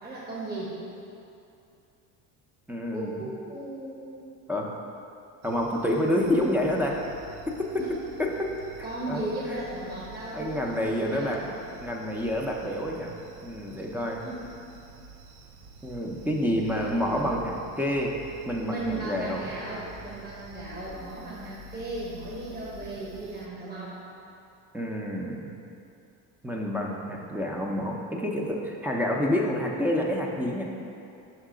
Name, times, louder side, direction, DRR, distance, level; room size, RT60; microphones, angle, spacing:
voice 1, 0.0-0.8 2.9-4.3 7.8-8.0 8.8-11.5 14.2-14.5 16.4-17.4 18.6-24.0, right 2 dB, 25° right, -5 dB, 1.2 m, -36 dB
voice 2, 2.7-3.2 4.5-4.7 5.4-7.0 7.5-7.8 8.2-8.5 8.8-9.2 10.3-11.4 11.8-13.1 13.4-14.3 15.8-18.2 18.5-19.5 24.7-25.6 26.4-30.6, left 1 dB, 5° right, -1 dB, 0.6 m, -28 dB
sound 1, 5.4-23.5, right 2 dB, 80° right, 0.7 m, -48 dB
5.8 x 3.6 x 4.9 m, 2.7 s
supercardioid pair, 95°, 37 cm